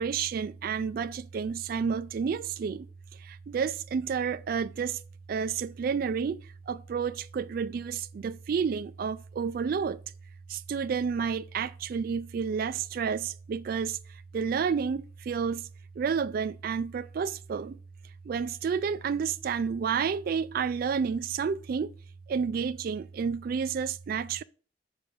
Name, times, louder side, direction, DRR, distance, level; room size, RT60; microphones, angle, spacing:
voice 1, 0.0-2.9 3.2-5.0 5.3-6.4 6.7-10.0 10.5-14.0 14.3-15.7 16.0-17.8 18.3-21.9 22.3-24.4, right 6 dB, 55° right, 0.3 m, -30 dB
6.6 x 5.5 x 3.8 m
head